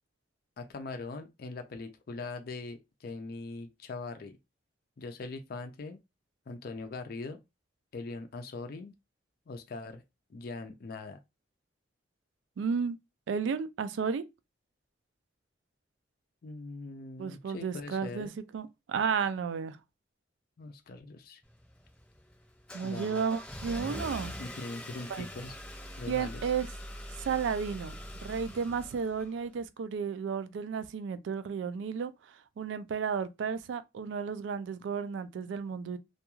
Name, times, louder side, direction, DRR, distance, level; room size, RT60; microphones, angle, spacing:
voice 1, 0.6-4.4 5.0-6.0 6.5-7.4 7.9-8.9 9.5-10.0 10.3-11.2 16.4-18.3 20.6-21.4 22.8-23.2 24.4-25.5 26.0-26.5, left 3 dB, 50° left, 0.4 m, -41 dB
voice 2, 12.6-13.0 13.3-14.2 17.2-19.8 22.7-24.4 25.1-25.3 26.1-26.7 27.2-36.0, right 6 dB, 80° right, 0.3 m, -33 dB
Car / Engine starting, 21.4-29.6, equal, 5° left, 0.8 m, -43 dB
2.3 x 2.3 x 3.0 m
head